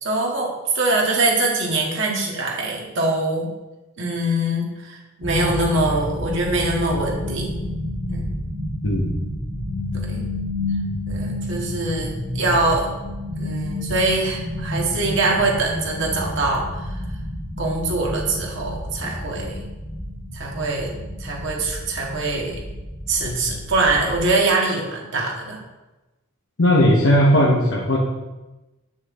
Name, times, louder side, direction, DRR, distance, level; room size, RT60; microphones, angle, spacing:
voice 1, 0.0-3.5 4.0-7.7 8.1-8.2 10.1-10.2 11.1-12.9 13.4-17.0 17.6-19.6 20.3-20.9 21.2-22.6 23.1-25.6, right 2 dB, 65° right, -2 dB, 1.7 m, -23 dB
Background Creepy Sounds, 5.2-24.3, left 1 dB, 15° right, 1.3 m, -30 dB
voice 2, 26.6-28.0, equal, 80° left, -3 dB, 1.2 m, -17 dB
7.8 x 6.2 x 3.7 m, 1.1 s
head